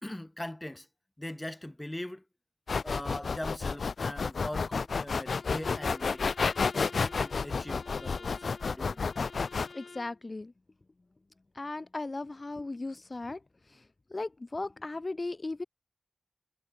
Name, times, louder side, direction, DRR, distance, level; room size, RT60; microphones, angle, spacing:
voice 1, 0.0-0.9 1.2-2.2 2.8-6.3 6.7-9.0, left 1 dB, 15° left, 1.2 m, -41 dB
sound 1, 2.7-9.7, left 5 dB, 90° left, 0.6 m, -30 dB
Bowed string instrument, 5.3-10.2, left 4 dB, 65° left, 2.0 m, -50 dB
voice 2, 9.7-10.5 11.5-13.4 13.7-13.8 14.1-15.6, left 2 dB, 40° left, 0.6 m, -37 dB
wide cardioid pair, 90°, 0 cm